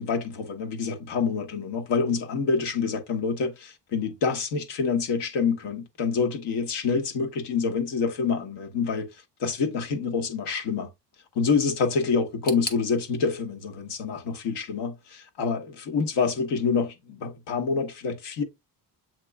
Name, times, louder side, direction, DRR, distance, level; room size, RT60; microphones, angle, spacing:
voice 1, 0.0-10.9 11.3-18.4, left 5 dB, 65° left, 1.1 m, -27 dB
sound 1, 12.4-15.3 15.6-16.4 16.7-16.8 17.6-17.7, left 2 dB, 20° left, 0.7 m, -42 dB
7.5 x 3.0 x 2.2 m
cardioid pair, 125°, 44 cm